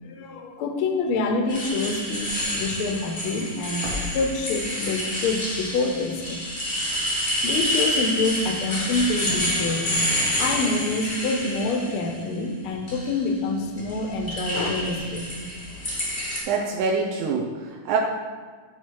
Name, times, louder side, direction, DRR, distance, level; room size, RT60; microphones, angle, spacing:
voice 1, 0.0-6.5 7.4-9.9 10.3-15.4, left 3 dB, 90° left, 4 dB, 1.1 m, -26 dB
sound 1, 1.5-12.1 12.6-13.2 13.8-16.4, equal, 25° left, 1.5 m, -28 dB
sound 2, 3.7-5.3 5.9-12.1, left 1 dB, 60° right, 2.6 m, -42 dB
voice 2, 16.5-18.0, right 5 dB, 80° right, -1 dB, 2.1 m, -25 dB
10.5 x 4.4 x 4.6 m, 1.5 s
omnidirectional pair, 3.7 m